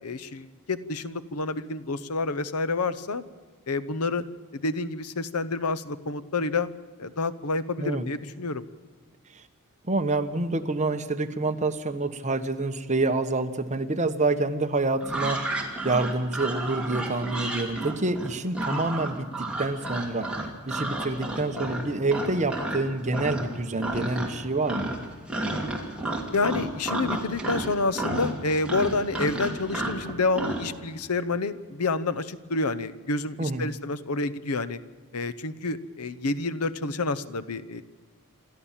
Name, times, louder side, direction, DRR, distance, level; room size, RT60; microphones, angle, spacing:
voice 1, 0.0-3.2 3.7-4.2 4.5-6.7 7.0-8.6 18.7-18.8 26.3-34.8 35.1-37.8, left 3 dB, 85° left, 15 dB, 0.9 m, -28 dB
voice 2, 9.9-15.6 15.8-24.9 33.4-33.7, right 2 dB, 35° right, 7 dB, 1.2 m, -27 dB
sound 1, 15.0-22.8 23.1-23.5 23.8-24.4 24.7-30.7, right 2 dB, 5° right, 2.9 m, -31 dB
27.5 x 13.0 x 7.4 m, 1.5 s
head